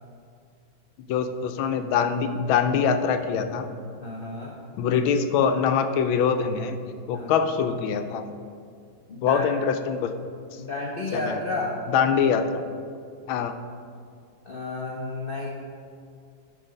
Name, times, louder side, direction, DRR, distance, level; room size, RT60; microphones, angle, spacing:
voice 1, 1.1-3.7 4.8-6.8 7.1-8.2 9.2-10.1 11.1-11.3 11.9-12.6 13.3-13.5, left 6 dB, 85° left, 7 dB, 1.4 m, -23 dB
voice 2, 4.0-4.6 7.1-7.3 9.1-9.5 10.6-11.8 14.4-15.5, left 2 dB, 65° left, -2 dB, 0.5 m, -31 dB
11.5 x 3.9 x 5.1 m, 2.2 s
omnidirectional pair, 2.2 m